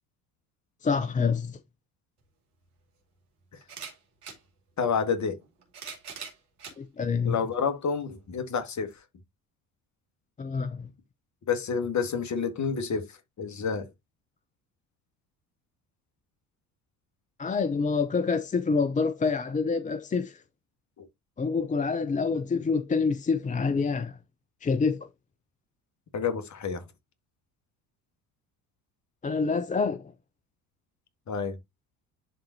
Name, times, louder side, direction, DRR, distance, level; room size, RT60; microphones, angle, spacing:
voice 1, 0.8-1.6 6.8-7.4 10.4-10.9 17.4-20.4 21.4-24.2 24.6-25.1 29.2-30.1, left 5 dB, 20° left, 0.6 m, -27 dB
sound 1, 2.2-2.3 3.6-4.4 5.4-6.8 7.5-7.6 8.9-9.0, right 6 dB, 80° right, 2.4 m, -42 dB
voice 2, 4.8-5.4 7.2-8.9 11.5-13.1 13.4-13.9 21.0-21.1 26.1-26.8 31.3-31.6, left 6 dB, 40° left, 2.0 m, -29 dB
11.0 x 3.9 x 2.7 m
hypercardioid pair, 60°, 44 cm